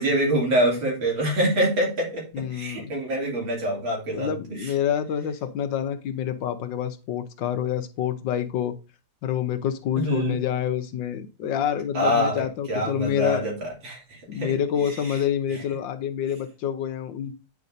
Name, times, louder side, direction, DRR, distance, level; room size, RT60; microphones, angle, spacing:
voice 1, 0.0-4.7 10.0-10.4 11.9-14.5 14.8-15.2 15.5-15.6, right 1 dB, 85° right, -2 dB, 3.4 m, -26 dB
voice 2, 2.3-2.9 4.1-8.8 9.2-13.5 14.3-17.3, left 9 dB, 80° left, 8 dB, 1.5 m, -27 dB
9.2 x 4.7 x 2.6 m, 0.31 s
omnidirectional pair, 2.1 m